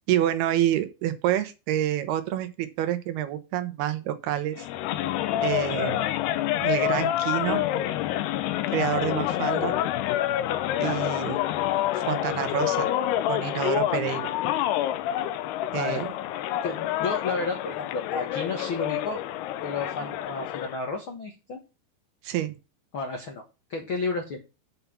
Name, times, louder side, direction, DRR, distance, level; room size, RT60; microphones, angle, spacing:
voice 1, 0.1-4.7 5.4-6.0 6.6-7.7 8.7-9.7 10.8-11.4 11.9-12.9 13.3-14.3 15.7-16.1 22.2-22.6, right 12 dB, 80° right, 2.9 m, -28 dB
sound 1, 4.6-20.8, left 13 dB, 85° left, 2.7 m, -27 dB
voice 2, 16.6-19.2 19.6-21.6 22.9-23.4 23.7-24.4, left 3 dB, 70° left, 1.2 m, -32 dB
7.1 x 5.6 x 7.0 m
omnidirectional pair, 4.6 m